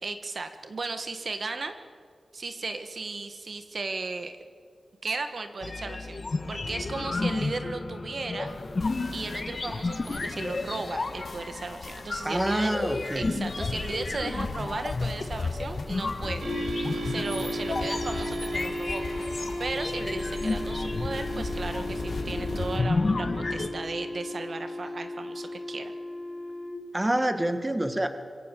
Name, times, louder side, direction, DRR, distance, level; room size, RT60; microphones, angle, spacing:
voice 1, 0.0-1.7 2.3-4.4 5.0-8.5 9.1-12.7 13.1-19.0 19.6-25.9, right 3 dB, 50° right, 8 dB, 1.5 m, -36 dB
sound 1, 5.6-23.7, left 3 dB, 40° left, 1.4 m, -32 dB
sound 2, 8.5-22.8, left 3 dB, 60° left, 3.5 m, -40 dB
voice 2, 12.2-13.3 26.9-28.1, right 1 dB, 15° right, 8 dB, 1.5 m, -27 dB
sound 3, 16.4-26.7, equal, 80° right, 5.3 m, -34 dB
25.5 x 23.5 x 7.6 m, 2.1 s
wide cardioid pair, 140°, 0 cm